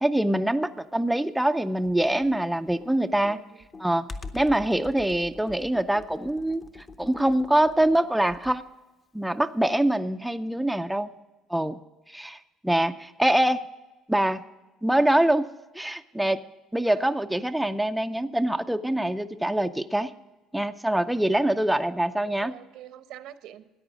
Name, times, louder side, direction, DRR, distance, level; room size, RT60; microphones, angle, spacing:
voice 1, 0.0-3.4 3.8-4.1 4.3-6.6 7.0-8.6 9.1-11.1 11.5-11.8 12.1-12.4 12.6-13.6 14.1-14.4 14.8-15.5 15.7-16.4 16.7-20.1 20.5-22.5, right 1 dB, 5° right, 7 dB, 0.4 m, -24 dB
Computer keyboard, 1.9-8.7, left 3 dB, 30° left, 0.8 m, -44 dB
voice 2, 3.2-3.7 16.1-16.3 16.8-17.2 22.4-23.7, right 12 dB, 70° right, 11 dB, 0.9 m, -46 dB
14.0 x 9.5 x 6.2 m, 1.1 s
cardioid pair, 130°, 0 cm